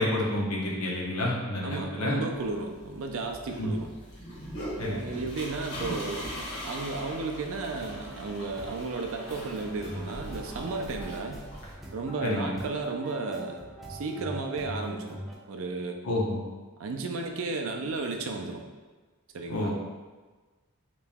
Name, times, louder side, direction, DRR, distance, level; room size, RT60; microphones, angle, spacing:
voice 1, 0.0-2.2 3.6-3.7 4.8-5.0 12.2-12.6 16.0-16.4 19.5-19.7, left 1 dB, 80° left, -3 dB, 0.8 m, -29 dB
voice 2, 1.6-3.9 4.8-6.3 6.6-11.5 11.9-13.6 13.9-15.2 15.5-16.0 16.8-18.6 19.3-19.7, right 3 dB, 65° right, 3 dB, 0.4 m, -33 dB
sound 1, 2.3-11.7, equal, 55° left, 0.9 m, -41 dB
sound 2, 7.8-15.3, right 1 dB, ahead, 0.4 m, -43 dB
2.9 x 2.8 x 3.5 m, 1.3 s
head